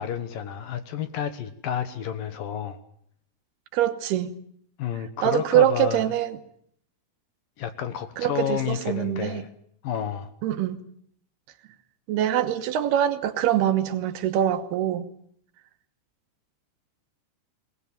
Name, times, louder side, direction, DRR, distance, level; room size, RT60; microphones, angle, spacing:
voice 1, 0.0-2.8 4.8-6.1 7.6-9.5 9.8-10.3, left 9 dB, 65° left, 10 dB, 2.5 m, -30 dB
voice 2, 3.7-4.3 5.2-6.4 8.2-9.5 10.4-10.8 12.1-15.1, right 11 dB, 75° right, 10 dB, 3.0 m, -24 dB
22.0 x 19.5 x 9.0 m, 0.66 s
omnidirectional pair, 4.8 m